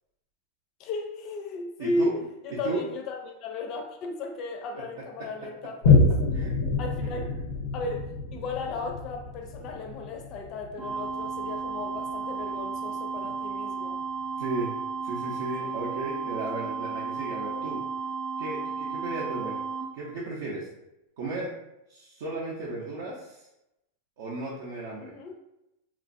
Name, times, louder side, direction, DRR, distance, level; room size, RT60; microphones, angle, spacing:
voice 1, 0.8-2.1 2.4-6.0 6.8-7.3 7.7-14.0 15.6-15.8 25.0-25.3, left 2 dB, 35° left, 3 dB, 0.4 m, -35 dB
voice 2, 1.8-2.2 2.5-2.8 4.7-4.8 6.3-6.5 7.0-7.3 14.4-14.7 15.0-17.8 18.4-19.5 19.9-20.7 21.2-21.5 21.9-23.5 24.2-25.1, right 3 dB, 65° right, -6 dB, 0.6 m, -34 dB
Boom, 5.8-12.8 13.3-13.4, left 3 dB, 85° left, 0.5 m, -27 dB
sound 1, 10.8-19.8, right 5 dB, 20° right, 0.7 m, -33 dB
2.9 x 2.5 x 2.5 m, 0.89 s
supercardioid pair, 165°, 0 cm